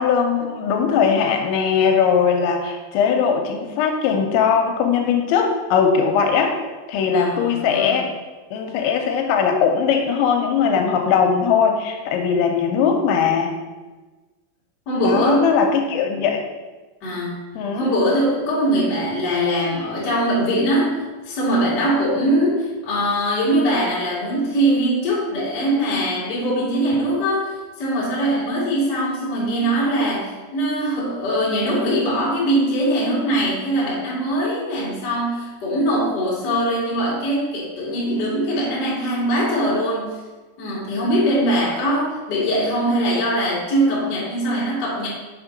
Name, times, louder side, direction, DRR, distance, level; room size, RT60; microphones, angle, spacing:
voice 1, 0.0-6.6 6.9-8.1 8.5-13.5 15.0-16.4 17.6-17.9, left 6 dB, 85° left, 3 dB, 2.9 m, -19 dB
voice 2, 7.1-8.0 14.8-15.5 17.0-17.4 17.7-21.0 21.2-27.5 27.8-40.0 40.6-45.1, right 1 dB, 50° left, -6 dB, 1.2 m, -21 dB
6.9 x 3.6 x 5.0 m, 1.3 s
omnidirectional pair, 5.4 m